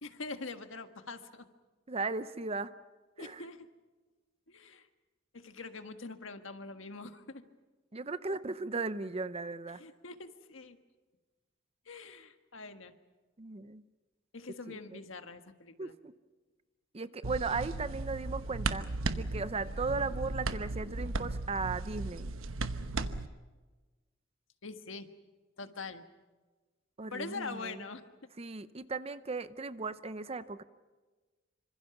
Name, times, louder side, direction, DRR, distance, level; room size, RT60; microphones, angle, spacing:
voice 1, 0.0-1.5 3.2-3.7 4.5-4.9 5.3-7.4 9.8-10.8 11.8-12.9 14.3-15.9 24.6-25.1 25.6-26.0 27.1-28.0, left 3 dB, 70° left, 8 dB, 1.6 m, -44 dB
voice 2, 1.9-2.7 3.2-3.4 7.9-9.8 13.4-13.8 14.7-15.0 15.8-16.1 16.9-18.9 19.1-22.3 27.0-27.8 28.4-30.6, right 3 dB, 30° right, 13 dB, 0.7 m, -37 dB
sound 1, 17.2-23.3, right 3 dB, 85° right, 1.1 m, -36 dB
27.0 x 25.5 x 6.0 m, 1.3 s
head